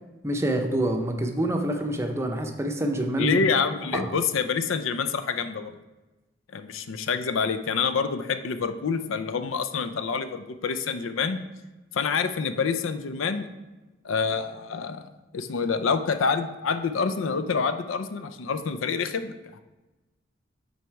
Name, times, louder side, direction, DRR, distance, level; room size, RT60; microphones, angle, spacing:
voice 1, 0.2-3.4 3.9-4.1, right 1 dB, 15° right, 3 dB, 0.6 m, -26 dB
voice 2, 3.2-5.7 6.5-11.4 11.9-13.5 14.0-15.0 15.3-19.6, left 5 dB, 85° left, 10 dB, 0.5 m, -27 dB
7.6 x 4.1 x 4.7 m, 1.1 s
head